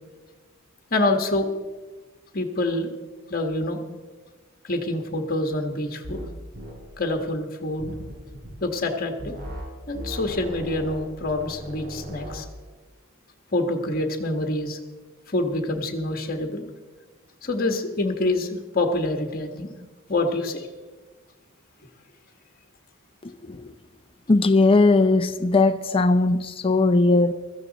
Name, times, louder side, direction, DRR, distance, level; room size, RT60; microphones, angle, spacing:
voice 1, 0.9-1.5 2.3-2.9 3.3-3.8 4.6-6.2 7.0-7.9 8.6-9.4 9.9-12.4 13.5-14.8 15.3-16.6 17.4-19.7 20.1-20.7, left 2 dB, 45° left, 1.4 m, -26 dB
sound 1, 6.0-6.3 6.5-6.8 7.8-8.5 9.2-9.7 9.9-12.4, equal, 50° right, 4.8 m, -37 dB
voice 2, 23.2-23.7 24.3-27.3, left 3 dB, 25° left, 0.6 m, -19 dB
16.0 x 14.0 x 4.0 m
head